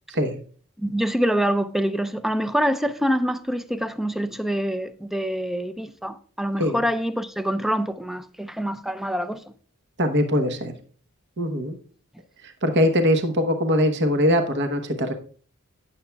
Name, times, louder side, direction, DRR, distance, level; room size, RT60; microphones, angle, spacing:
voice 1, 0.8-9.4, equal, ahead, 0.4 m, -25 dB
voice 2, 10.0-10.7 11.4-11.8 12.4-15.1, equal, 50° right, 1.0 m, -22 dB
16.5 x 7.1 x 2.3 m
head